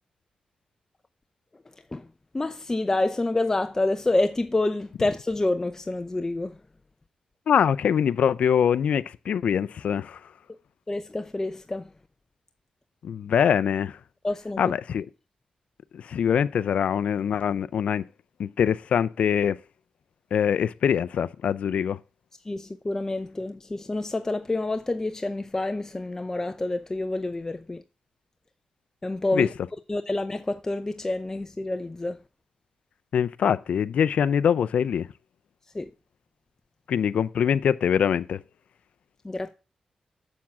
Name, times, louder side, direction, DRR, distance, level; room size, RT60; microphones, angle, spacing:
voice 1, 2.3-6.6 10.9-11.9 14.2-14.6 22.4-27.8 29.0-29.5 29.9-32.2 35.7-35.9 39.2-39.5, left 2 dB, 25° left, 0.7 m, -28 dB
voice 2, 7.5-10.2 13.0-14.0 14.6-15.1 15.9-18.0 18.4-19.6 20.3-22.0 29.3-29.5 33.1-35.1 36.9-38.4, left 8 dB, 80° left, 0.4 m, -23 dB
7.2 x 7.2 x 7.4 m
cardioid pair, 75°, 2 cm